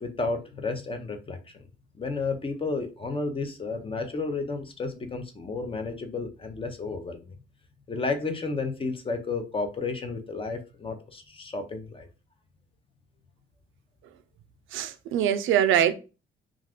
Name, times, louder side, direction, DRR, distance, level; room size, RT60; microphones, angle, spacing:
voice 1, 0.0-1.7 2.0-7.3 7.9-12.1, left 3 dB, 25° left, 0.6 m, -32 dB
voice 2, 14.7-15.9, right 10 dB, 85° right, 0.4 m, -23 dB
2.4 x 2.4 x 3.4 m
cardioid pair, 90°, 20 cm